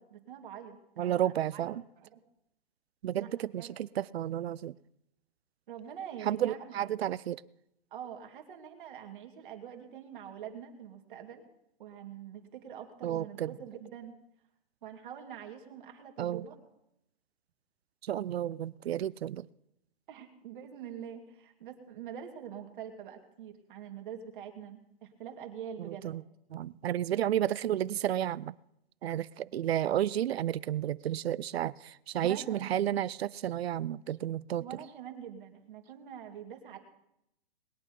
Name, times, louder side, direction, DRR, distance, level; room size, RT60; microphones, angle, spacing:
voice 1, 0.0-2.2 3.1-3.7 5.7-6.6 7.9-11.4 11.8-14.1 14.8-16.6 20.1-26.3 32.2-32.8 34.6-36.8, right 9 dB, 55° right, 3 dB, 2.4 m, -45 dB
voice 2, 1.0-1.8 3.0-4.8 6.2-7.4 13.0-13.5 16.2-16.5 18.0-19.5 25.8-26.2 26.5-28.5 29.0-34.7, right 11 dB, 90° right, 21 dB, 0.6 m, -32 dB
20.5 x 8.6 x 5.4 m, 0.82 s
hypercardioid pair, 160°, 30 cm